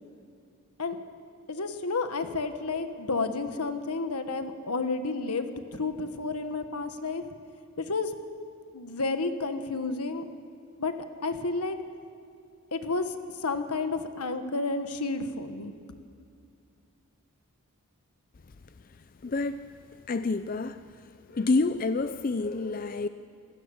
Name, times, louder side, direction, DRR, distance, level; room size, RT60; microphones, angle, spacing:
voice 1, 1.5-7.2 7.8-8.1 8.7-10.2 10.8-10.9 11.2-11.8 12.7-13.1 13.4-15.7, left 3 dB, 85° left, 8 dB, 1.3 m, -31 dB
voice 2, 19.2-19.7 20.1-20.8 21.3-23.1, left 3 dB, 40° left, 11 dB, 0.4 m, -28 dB
27.5 x 16.0 x 7.1 m, 2.4 s
head